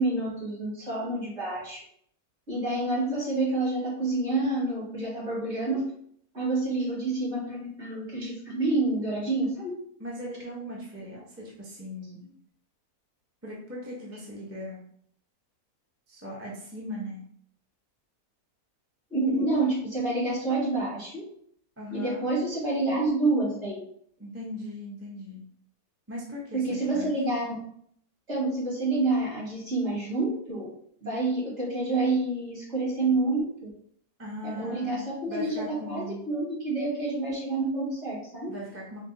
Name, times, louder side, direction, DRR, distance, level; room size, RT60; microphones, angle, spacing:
voice 1, 0.0-1.8 2.5-5.9 6.3-9.7 19.1-21.2 21.9-23.8 26.5-27.5 28.3-30.7 31.0-33.7 34.4-38.5, right 2 dB, 45° right, -6 dB, 2.2 m, -28 dB
voice 2, 10.0-12.2 13.4-14.8 16.1-17.2 21.8-22.3 24.2-25.4 26.1-27.1 34.2-36.2 38.5-39.1, equal, 10° right, -5 dB, 0.8 m, -39 dB
4.6 x 2.2 x 4.0 m, 0.65 s
omnidirectional pair, 1.6 m